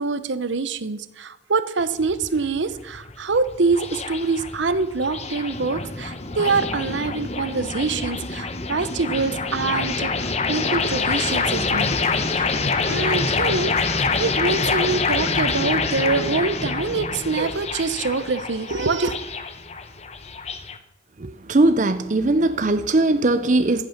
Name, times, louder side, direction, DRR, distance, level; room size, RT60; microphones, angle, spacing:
voice 1, 0.0-12.0 12.3-12.6 12.9-19.2, right 4 dB, 75° right, 0.8 m, -25 dB
sound 1, 1.8-20.8, left 4 dB, 35° left, 0.9 m, -26 dB
voice 2, 21.2-23.8, right 2 dB, 40° right, 0.5 m, -19 dB
15.0 x 8.5 x 5.8 m
head